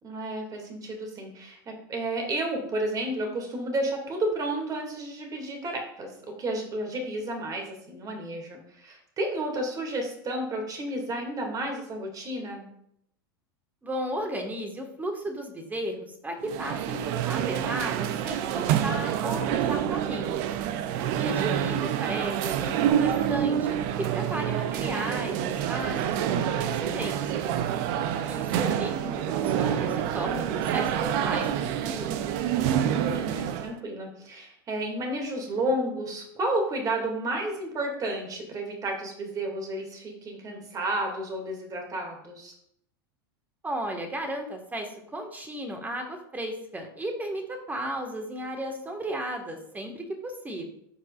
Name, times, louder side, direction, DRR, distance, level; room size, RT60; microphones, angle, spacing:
voice 1, 0.0-12.7 32.9-42.5, right 1 dB, 30° right, 2 dB, 2.3 m, -32 dB
voice 2, 13.8-20.4 21.1-27.5 28.2-32.3 43.6-50.6, right 1 dB, 15° right, 4 dB, 1.6 m, -35 dB
sound 1, 16.4-33.7, right 10 dB, 55° right, 0.6 m, -27 dB
14.0 x 4.7 x 2.4 m, 0.72 s
hypercardioid pair, 90°, 12 cm